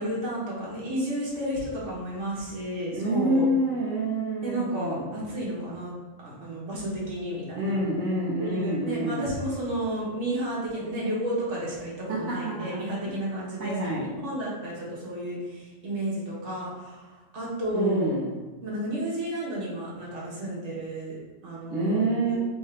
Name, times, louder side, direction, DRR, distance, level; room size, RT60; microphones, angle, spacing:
voice 1, 0.0-3.5 4.4-5.9 6.2-7.8 8.4-18.1 18.6-22.4, right 1 dB, 65° right, -6 dB, 1.6 m, -32 dB
voice 2, 2.9-5.1 7.6-9.4 12.1-12.8 13.6-14.1 17.7-18.3 21.7-22.4, right 1 dB, 85° right, -5 dB, 1.3 m, -27 dB
3.8 x 3.6 x 3.3 m, 1.2 s
omnidirectional pair, 1.4 m